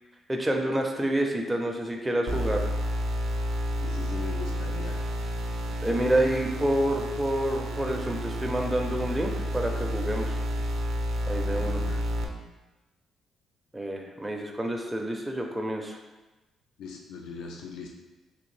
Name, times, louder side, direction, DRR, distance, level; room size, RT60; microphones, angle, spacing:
voice 1, 0.3-2.7 5.8-10.4 11.3-11.8 13.7-16.0, right 1 dB, 10° right, 1 dB, 0.4 m, -28 dB
sound 1, 2.3-12.2, equal, 75° right, 0.4 m, -30 dB
voice 2, 3.8-5.0 11.5-12.1 16.8-17.9, left 5 dB, 80° left, 1 dB, 0.3 m, -40 dB
3.5 x 2.3 x 3.2 m, 1.1 s
cardioid pair, 90°, 0 cm